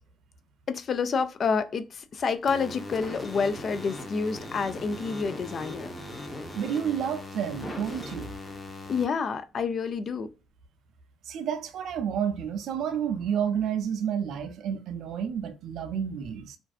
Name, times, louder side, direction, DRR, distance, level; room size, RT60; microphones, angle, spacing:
voice 1, 0.7-5.9 8.9-10.3, left 5 dB, 50° left, 0.4 m, -28 dB
sound 1, 2.5-9.0, left 1 dB, 20° left, 0.7 m, -39 dB
voice 2, 6.3-8.3 11.2-16.6, right 8 dB, 70° right, 0.5 m, -30 dB
2.5 x 2.3 x 2.3 m
cardioid pair, 90°, 0 cm